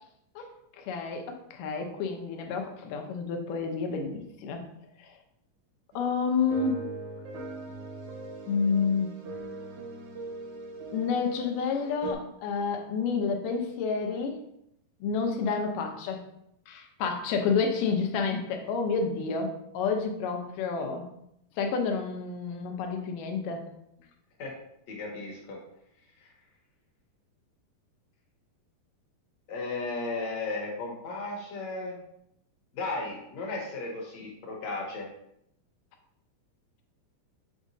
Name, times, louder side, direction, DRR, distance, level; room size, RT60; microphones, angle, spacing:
voice 1, 0.8-4.6 5.0-5.1 6.0-6.9 8.5-9.1 10.9-14.4 15.0-16.2 16.7-21.1 21.6-23.7, left 5 dB, 75° left, 4 dB, 2.3 m, -29 dB
sound 1, 5.9-6.1 6.5-12.1, right 3 dB, 65° right, 2.2 m, -40 dB
voice 2, 24.9-25.6 26.2-26.3 29.5-32.0 32.7-35.1, left 3 dB, 60° left, -1 dB, 2.1 m, -35 dB
7.2 x 4.9 x 2.7 m, 0.78 s
omnidirectional pair, 4.0 m